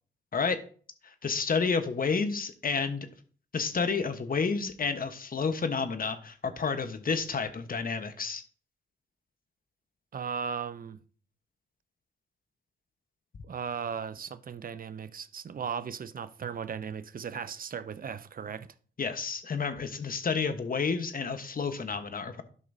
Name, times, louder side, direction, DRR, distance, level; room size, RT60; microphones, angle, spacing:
voice 1, 1.0-3.1 3.5-8.4 19.0-22.4, left 5 dB, 50° left, 1.1 m, -30 dB
voice 2, 10.1-11.0 13.4-18.7, right 7 dB, 50° right, 0.7 m, -37 dB
12.5 x 5.4 x 2.7 m
cardioid pair, 55°, 19 cm